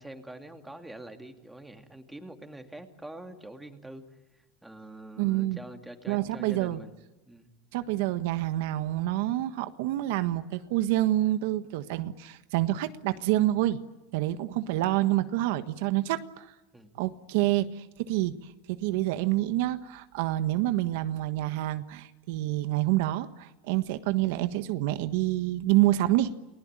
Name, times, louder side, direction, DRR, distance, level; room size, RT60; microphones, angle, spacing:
voice 1, 0.0-4.0 4.3-7.0 7.3-7.5 16.7-17.0, right 1 dB, 5° right, 5 dB, 2.6 m, -45 dB
voice 2, 5.2-5.6 6.1-6.8 7.7-13.8 14.1-16.5 17.0-26.3, right 15 dB, 70° right, 10 dB, 1.4 m, -27 dB
29.5 x 20.5 x 9.0 m, 1.1 s
supercardioid pair, 140°, 0 cm